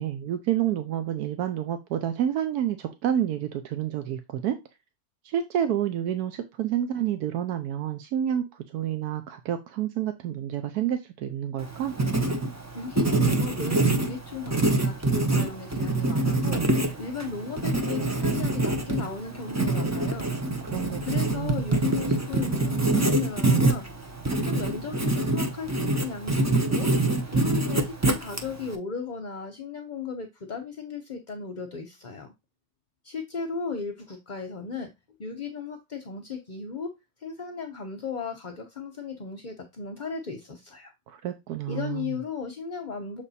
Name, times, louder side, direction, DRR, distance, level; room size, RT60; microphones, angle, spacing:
voice 1, 0.0-4.6 5.2-11.9 20.7-21.7 41.1-42.1, right 10 dB, 80° right, 1.2 m, -29 dB
Writing, 11.6-28.7, right 2 dB, 25° right, 0.3 m, -25 dB
voice 2, 12.7-16.7 17.0-20.3 21.0-23.9 24.3-26.9 27.3-32.3 33.0-34.9 35.2-36.9 37.2-40.9 41.7-43.2, left 5 dB, 40° left, 0.7 m, -36 dB
7.1 x 3.3 x 4.1 m
omnidirectional pair, 1.6 m